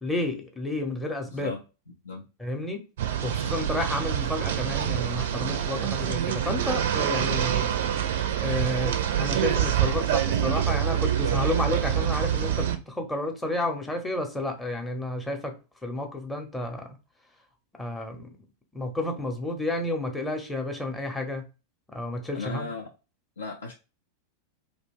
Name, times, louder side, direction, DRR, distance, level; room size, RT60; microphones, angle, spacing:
voice 1, 0.0-1.5 2.4-2.8 3.2-7.8 8.4-15.5 15.8-17.0 17.8-18.3 18.7-21.4 21.9-22.7, left 2 dB, 10° left, 0.7 m, -31 dB
voice 2, 1.3-2.3 22.3-22.9 23.4-23.7, left 3 dB, 75° left, 0.4 m, -37 dB
sound 1, 3.0-12.8, right 10 dB, 60° right, 0.4 m, -26 dB
2.5 x 2.2 x 3.4 m
figure-of-eight pair, 90°, 0 cm